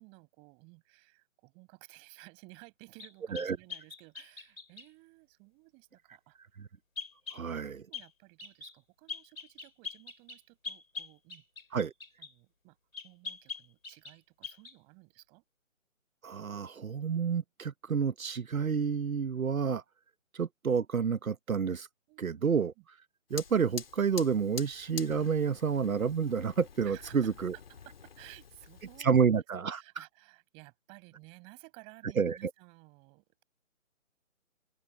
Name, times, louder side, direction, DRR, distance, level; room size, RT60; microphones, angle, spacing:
voice 1, 0.0-6.6 7.4-11.4 12.2-12.8 13.0-15.4 22.1-22.5 22.8-22.9 26.8-29.3 29.7-33.4, right 30 dB, 15° right, 7.0 m, -56 dB
sound 1, 3.0-4.9 7.0-7.4 7.9-8.1 8.4-8.8 9.1-12.3 12.9-14.2 14.4-14.8, left 5 dB, 85° left, 6.7 m, -43 dB
voice 2, 7.3-7.8 11.7-11.9 16.2-19.8 20.3-21.9 22.2-22.7 23.3-27.5 29.0-30.0 32.2-32.5, right 6 dB, 85° right, 1.1 m, -29 dB
Fire, 23.3-29.1, left 7 dB, 45° left, 3.2 m, -47 dB
open air
figure-of-eight pair, 165°, 40 cm